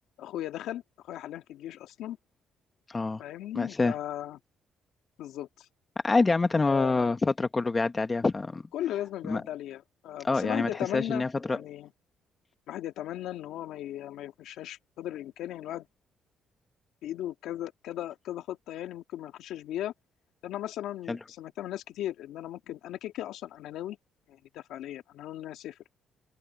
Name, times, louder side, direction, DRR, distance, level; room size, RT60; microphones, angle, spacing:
voice 1, 0.2-2.2 3.2-4.4 5.2-5.7 6.6-7.1 8.7-11.9 12.7-15.9 17.0-19.9 20.4-24.0 24.3-25.8, left 12 dB, 85° left, 2.4 m, -37 dB
voice 2, 2.9-3.2 3.5-3.9 6.0-8.6 9.3-9.4 10.2-11.6 21.1-21.2, left 3 dB, 25° left, 1.5 m, -26 dB
cardioid pair, 90°, 0 cm